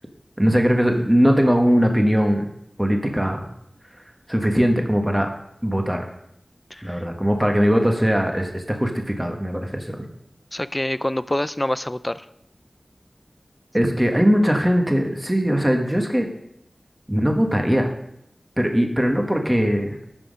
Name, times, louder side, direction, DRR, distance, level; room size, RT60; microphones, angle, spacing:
voice 1, 0.4-2.5 2.8-3.4 4.3-5.3 5.6-6.0 6.8-10.1 13.7-16.3 17.1-17.9 18.6-20.0, equal, 10° right, 3 dB, 1.3 m, -20 dB
voice 2, 6.7-7.1 10.5-12.3, left 1 dB, 20° left, 15 dB, 0.4 m, -26 dB
12.5 x 6.0 x 5.1 m, 0.76 s
wide cardioid pair, 70°, 0 cm